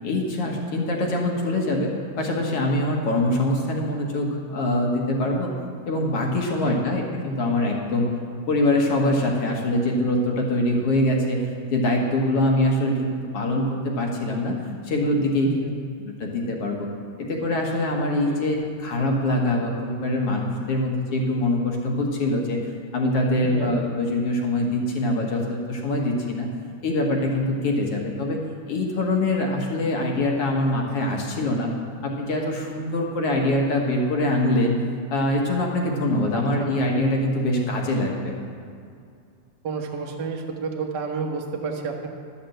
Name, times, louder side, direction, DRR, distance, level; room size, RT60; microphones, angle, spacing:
voice 1, 0.0-5.5 5.9-8.1 8.5-11.4 11.7-14.6 14.8-15.7 16.1-16.9 17.2-22.6 22.9-26.5 26.8-28.4 28.7-31.7 32.0-34.8 35.1-38.4, left 1 dB, 55° left, 0 dB, 2.0 m, -24 dB
voice 2, 23.4-23.8 36.3-36.7 39.6-42.1, right 4 dB, 65° right, 1 dB, 1.0 m, -30 dB
12.0 x 7.2 x 7.8 m, 2.3 s
omnidirectional pair, 3.8 m